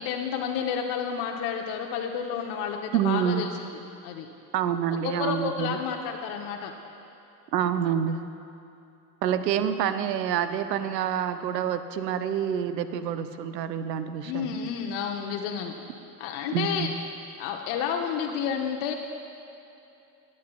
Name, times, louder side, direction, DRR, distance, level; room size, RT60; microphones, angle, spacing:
voice 1, 0.0-3.5 4.0-4.3 5.0-6.7 14.2-15.8 16.2-16.9 17.4-18.9, left 7 dB, 55° left, 2 dB, 0.8 m, -30 dB
voice 2, 2.9-3.4 4.5-5.8 7.5-8.2 9.2-14.6 16.5-16.9, right 9 dB, 85° right, 11 dB, 0.6 m, -27 dB
20.5 x 7.4 x 2.3 m, 2.7 s
hypercardioid pair, 70°, 48 cm